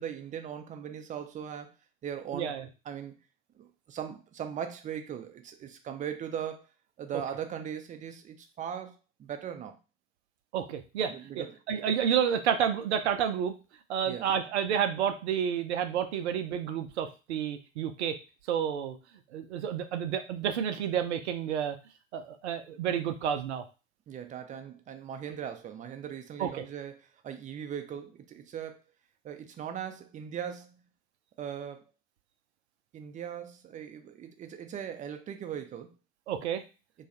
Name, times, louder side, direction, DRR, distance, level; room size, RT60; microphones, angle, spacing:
voice 1, 0.0-1.7 2.0-2.5 2.9-3.1 3.5-6.7 7.0-9.8 11.1-11.6 14.1-14.3 24.1-28.8 29.2-30.8 31.4-31.8 32.9-35.9, right 8 dB, 20° right, 6 dB, 0.5 m, -39 dB
voice 2, 10.5-13.5 13.9-18.2 18.5-19.0 19.3-21.8 22.1-23.6 26.4-26.6 36.3-36.6, right 8 dB, 60° right, 7 dB, 0.6 m, -30 dB
3.1 x 2.3 x 4.1 m, 0.31 s
figure-of-eight pair, 75°, 39 cm